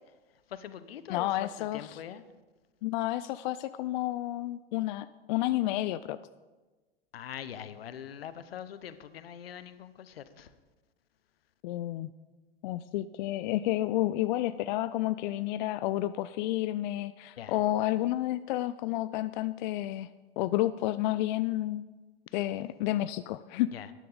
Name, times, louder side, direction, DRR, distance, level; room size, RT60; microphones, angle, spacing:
voice 1, 0.5-2.2 7.1-10.5 17.4-17.6 23.7-23.9, left 9 dB, 75° left, 13 dB, 0.8 m, -43 dB
voice 2, 1.1-2.0 2.8-6.2 11.6-12.1 12.6-20.1 20.4-21.8 22.3-23.7, left 15 dB, 50° left, 14 dB, 0.4 m, -30 dB
12.0 x 10.5 x 4.0 m, 1.2 s
hypercardioid pair, 95°, 30 cm